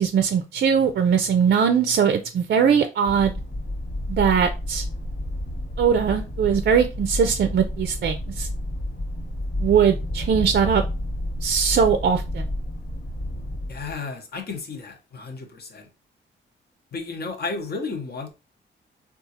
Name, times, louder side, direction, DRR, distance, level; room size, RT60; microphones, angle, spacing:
voice 1, 0.0-3.3 4.1-4.9 5.8-8.5 9.6-10.8 11.4-12.4, right 7 dB, 55° right, 0.4 m, -20 dB
sound 1, 3.1-14.0, left 1 dB, 75° left, 1.5 m, -30 dB
voice 2, 13.7-15.9 16.9-18.3, left 4 dB, 50° left, 0.8 m, -33 dB
3.7 x 2.4 x 2.7 m
cardioid pair, 80°, 21 cm